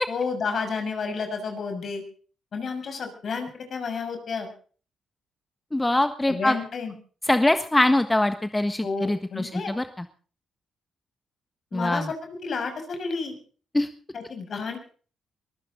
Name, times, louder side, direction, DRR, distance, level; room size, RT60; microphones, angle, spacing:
voice 1, 0.1-2.0 2.5-4.5 6.3-6.9 8.8-9.7 11.7-12.1 12.4-13.4 14.1-14.8, left 5 dB, 55° left, 6 dB, 6.5 m, -31 dB
voice 2, 5.7-6.5 7.3-10.0 11.7-12.1 13.7-13.9, left 1 dB, 15° left, 10 dB, 1.4 m, -23 dB
23.0 x 15.5 x 3.8 m, 0.41 s
supercardioid pair, 65°, 0 cm